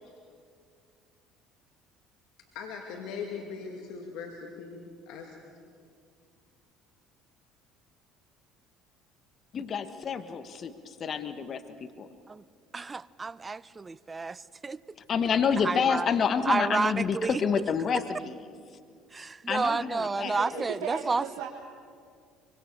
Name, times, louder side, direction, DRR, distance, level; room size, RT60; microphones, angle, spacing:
voice 1, 2.5-5.4, left 5 dB, 70° left, 2 dB, 2.5 m, -40 dB
voice 2, 9.5-12.1 15.1-18.3 19.5-20.6, left 6 dB, 45° left, 10 dB, 1.4 m, -28 dB
voice 3, 12.7-14.8 15.6-16.1 16.5-17.4 19.1-21.3, right 4 dB, 25° right, 20 dB, 0.7 m, -30 dB
voice 4, 20.2-21.5, right 6 dB, 70° right, -4 dB, 3.6 m, -37 dB
25.0 x 24.5 x 6.8 m, 2.2 s
hypercardioid pair, 70°, 0 cm